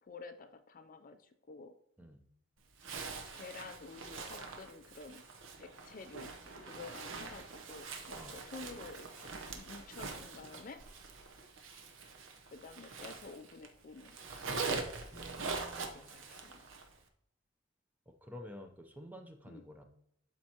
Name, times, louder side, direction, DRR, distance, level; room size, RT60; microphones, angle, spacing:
voice 1, 0.0-1.7 3.3-5.2 5.6-10.8 12.5-14.3 15.4-16.6 19.5-19.7, left 4 dB, 40° left, 9 dB, 0.4 m, -51 dB
Zipper (clothing), 2.8-13.7 14.0-16.9, right 4 dB, 65° right, 0.8 m, -43 dB
voice 2, 15.1-16.1 18.1-19.8, equal, 10° right, 5 dB, 0.6 m, -51 dB
12.0 x 4.4 x 2.8 m, 0.75 s
head